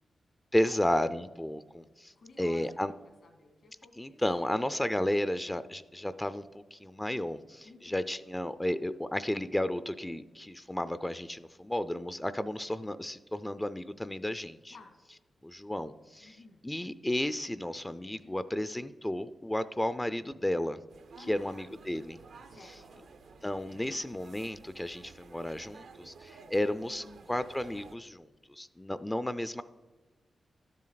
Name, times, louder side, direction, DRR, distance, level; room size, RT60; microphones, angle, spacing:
voice 1, 0.5-2.9 4.0-14.7 15.4-16.4 16.6-20.8 21.2-22.2 23.4-29.6, left 1 dB, 15° left, 13 dB, 0.4 m, -33 dB
voice 2, 2.2-2.8 3.2-5.2 6.8-6.9 7.3-8.0 14.7-15.0 16.2-16.6 17.5-17.8 18.2-18.4 21.1-21.8 22.4-23.1 26.8-27.3, left 2 dB, 75° left, 4 dB, 2.1 m, -55 dB
sound 1, 20.9-28.0, right 4 dB, 80° right, 0.8 m, -53 dB
12.0 x 7.5 x 4.0 m, 1.3 s
cardioid pair, 65°, 0 cm